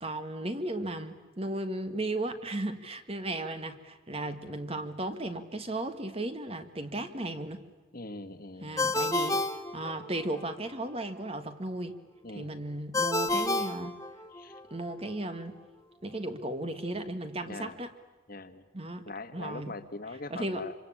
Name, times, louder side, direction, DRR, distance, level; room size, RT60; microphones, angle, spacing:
voice 1, 0.0-7.6 8.6-11.9 12.3-14.0 14.7-15.5 16.0-17.9 18.7-19.0 19.3-19.7 20.3-20.6, right 1 dB, 30° right, 9 dB, 1.6 m, -35 dB
voice 2, 7.9-9.4 12.2-12.5 14.3-14.6 17.5-17.8 18.3-18.6 19.1-20.7, left 2 dB, 45° left, 9 dB, 1.7 m, -42 dB
Ringtone, 8.8-10.4 12.9-14.6, left 2 dB, 15° left, 1.4 m, -30 dB
26.5 x 25.5 x 8.7 m, 1.2 s
head